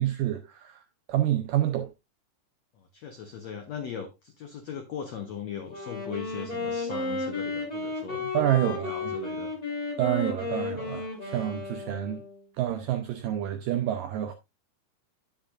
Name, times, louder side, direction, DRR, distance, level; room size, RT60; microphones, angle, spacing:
voice 1, 0.0-1.9 8.3-9.1 10.0-12.2 12.6-14.3, right 12 dB, 80° right, 1.9 m, -28 dB
voice 2, 2.7-9.5, left 7 dB, 85° left, 1.5 m, -39 dB
Wind instrument woodwind instrument, 5.7-12.4, left 3 dB, 10° left, 4.0 m, -33 dB
10.0 x 8.8 x 2.5 m
omnidirectional pair, 4.7 m